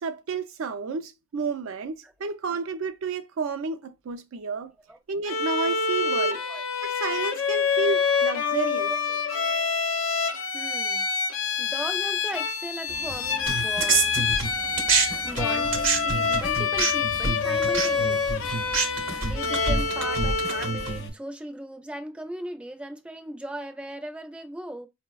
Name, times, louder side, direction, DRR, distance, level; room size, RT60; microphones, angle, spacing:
voice 1, 0.0-4.7 5.1-6.4 6.8-8.9, right 4 dB, 90° right, 0.4 m, -31 dB
Bowed string instrument, 5.3-21.0, left 5 dB, 90° left, 0.5 m, -27 dB
voice 2, 6.3-6.6 8.9-9.2 10.5-11.1 11.6-14.2 15.2-18.5 18.7-24.9, right 1 dB, 5° right, 0.4 m, -38 dB
sound 1, 12.9-21.1, left 2 dB, 60° left, 0.8 m, -42 dB
sound 2, 13.5-15.1 15.3-21.1, right 4 dB, 70° right, 0.7 m, -26 dB
4.6 x 2.1 x 2.3 m
head